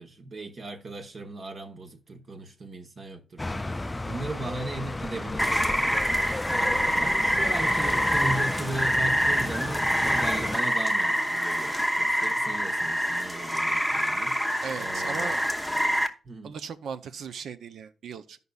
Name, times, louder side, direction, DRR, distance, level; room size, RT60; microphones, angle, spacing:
voice 1, 0.0-6.0 6.5-15.4 16.2-16.6, right 2 dB, 50° right, 1.1 m, -37 dB
sound 1, 3.4-10.6, left 2 dB, 20° left, 0.3 m, -34 dB
Rain, 5.4-16.1, equal, 5° right, 0.9 m, -26 dB
voice 2, 14.6-15.4 16.4-18.4, right 6 dB, 80° right, 0.6 m, -37 dB
14.0 x 5.4 x 2.3 m
cardioid pair, 90°, 0 cm